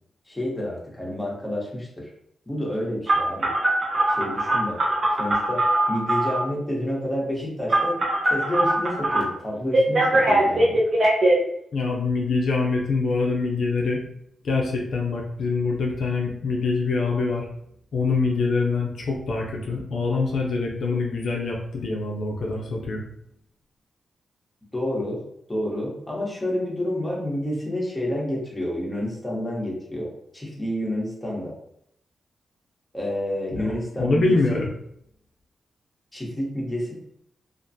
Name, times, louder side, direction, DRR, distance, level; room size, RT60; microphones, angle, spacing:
voice 1, 0.3-2.1 2.5-3.5 4.1-4.8 5.1-8.0 8.2-10.8 24.7-25.2 25.5-31.5 32.9-34.6 36.1-36.9, left 1 dB, 10° left, -4 dB, 0.9 m, -29 dB
Telephone, 3.1-6.4 7.7-9.2 9.7-11.3, right 1 dB, 40° right, 0.7 m, -21 dB
voice 2, 11.7-14.0 14.4-17.5 17.9-23.0 33.5-34.7, left 3 dB, 70° left, -1 dB, 0.4 m, -25 dB
2.4 x 2.2 x 2.6 m, 0.72 s
wide cardioid pair, 110°, 0 cm